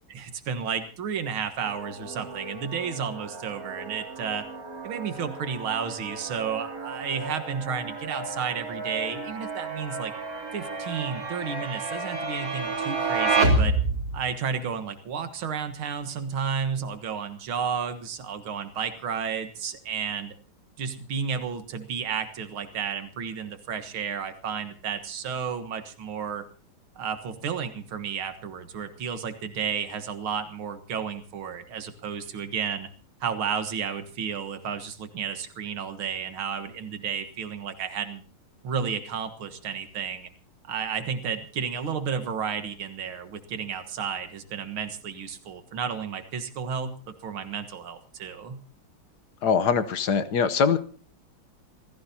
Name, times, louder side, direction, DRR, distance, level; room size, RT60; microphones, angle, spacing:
voice 1, 0.1-4.5 4.8-10.1 10.5-13.8 14.1-20.3 20.8-26.4 27.0-32.9 33.2-38.2 38.6-40.3 40.6-46.9 47.2-48.6, right 7 dB, 85° right, 9 dB, 2.3 m, -32 dB
sound 1, 1.6-14.2, right 2 dB, 45° right, 4.2 m, -30 dB
voice 2, 49.4-50.8, left 6 dB, 60° left, 12 dB, 1.4 m, -22 dB
27.0 x 15.5 x 2.8 m, 0.41 s
omnidirectional pair, 2.2 m